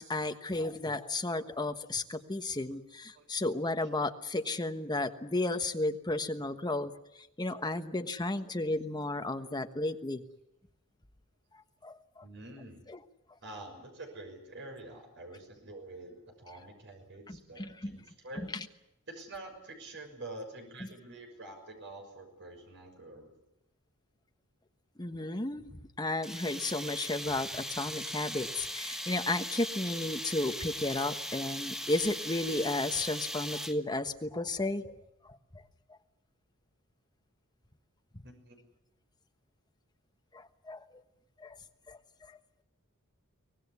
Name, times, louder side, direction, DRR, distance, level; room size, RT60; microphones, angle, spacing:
voice 1, 0.0-10.2 11.8-12.2 12.9-13.0 17.3-18.0 18.4-18.6 25.0-35.0 35.3-35.6 40.3-41.0 41.4-41.6 41.9-42.4, left 2 dB, 20° left, 7 dB, 1.3 m, -33 dB
voice 2, 3.1-3.4 5.5-5.6 12.2-12.8 13.4-18.5 19.1-23.3 38.2-38.6, right 2 dB, 55° right, 4 dB, 6.1 m, -47 dB
sound 1, 26.2-34.0, equal, ahead, 1.5 m, -39 dB
24.0 x 18.5 x 9.7 m, 0.84 s
head